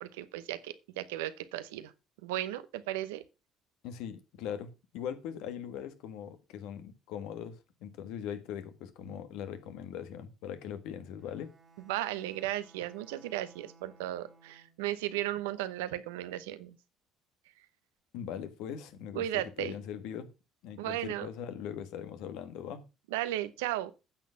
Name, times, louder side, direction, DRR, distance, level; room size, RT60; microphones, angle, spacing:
voice 1, 0.0-1.9 2.2-3.2 11.9-16.8 19.1-19.7 20.8-21.3 23.1-23.9, right 14 dB, 85° right, 0.8 m, -35 dB
voice 2, 3.8-11.5 18.1-20.3 20.6-22.9, left 9 dB, 75° left, 1.5 m, -40 dB
Bowed string instrument, 11.2-15.0, right 3 dB, 35° right, 1.9 m, -60 dB
8.9 x 6.1 x 5.6 m
supercardioid pair, 70°, 0 cm